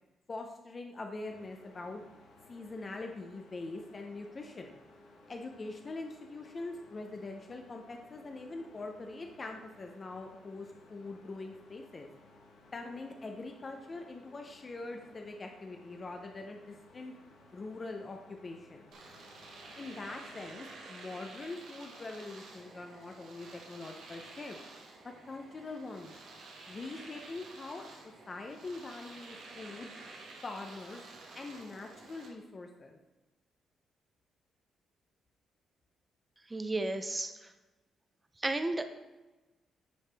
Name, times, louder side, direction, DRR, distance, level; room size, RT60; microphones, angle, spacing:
voice 1, 0.3-2.0 2.5-4.8 5.3-12.1 12.7-17.1 17.5-18.9 19.8-24.6 25.0-26.1 26.7-29.9 30.4-31.0 31.3-33.0, left 3 dB, 30° left, 3 dB, 0.6 m, -43 dB
sound 1, 1.3-20.6, left 2 dB, 85° left, 1.3 m, -58 dB
Domestic sounds home sounds, 18.9-32.3, right 3 dB, 75° right, 1.4 m, -51 dB
voice 2, 36.5-37.5 38.4-39.1, right 2 dB, 15° right, 8 dB, 0.5 m, -34 dB
9.0 x 4.7 x 3.4 m, 1.1 s
cardioid pair, 115°, 0 cm